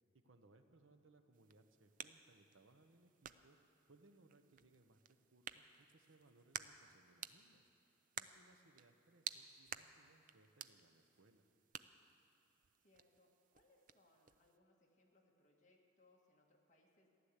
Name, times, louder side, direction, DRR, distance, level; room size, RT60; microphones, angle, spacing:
voice 1, 0.2-3.6 3.9-7.7 8.2-11.4, right 2 dB, 80° right, 8 dB, 0.9 m, -69 dB
sound 1, 1.3-14.6, right 9 dB, 40° right, 0.4 m, -54 dB
voice 2, 12.8-17.1, left 2 dB, 35° left, -1 dB, 1.8 m, -73 dB
15.0 x 11.5 x 8.2 m, 2.9 s
head